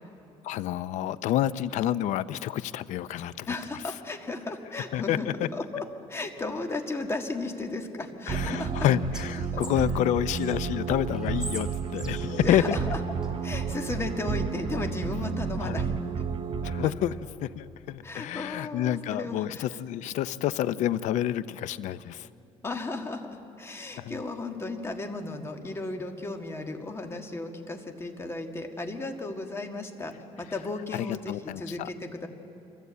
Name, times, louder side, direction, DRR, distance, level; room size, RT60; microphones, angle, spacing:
voice 1, 0.4-3.8 4.9-5.3 8.3-12.8 15.6-15.8 16.6-22.3 24.0-24.2 30.9-31.9, left 12 dB, 80° left, 16 dB, 0.6 m, -29 dB
voice 2, 3.5-5.3 5.5-5.8 6.1-8.9 9.5-9.6 12.3-13.0 13.4-15.9 18.0-19.6 22.6-30.1 30.4-32.3, left 2 dB, 20° left, 4 dB, 1.8 m, -35 dB
sound 1, 8.3-16.9, right 6 dB, 45° right, 0.9 m, -31 dB
Whispering, 8.5-10.5 11.1-13.3, right 1 dB, 5° right, 2.7 m, -43 dB
25.5 x 15.0 x 8.2 m, 2.9 s
cardioid pair, 120°, 12 cm